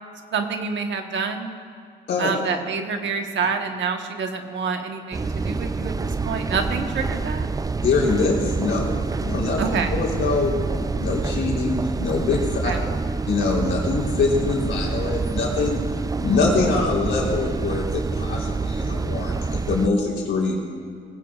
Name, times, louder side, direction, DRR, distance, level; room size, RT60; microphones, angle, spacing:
voice 1, 0.3-1.5 2.2-7.5 9.6-9.9 12.6-12.8, right 5 dB, 70° right, 4 dB, 1.3 m, -27 dB
sound 1, 5.1-19.9, right 4 dB, 20° right, 0.4 m, -27 dB
voice 2, 7.8-9.6 9.9-10.5 11.0-12.7 13.3-15.8 16.2-20.5, left 3 dB, 75° left, -2 dB, 3.7 m, -24 dB
20.5 x 16.0 x 2.5 m, 2.4 s
cardioid pair, 85°, 20 cm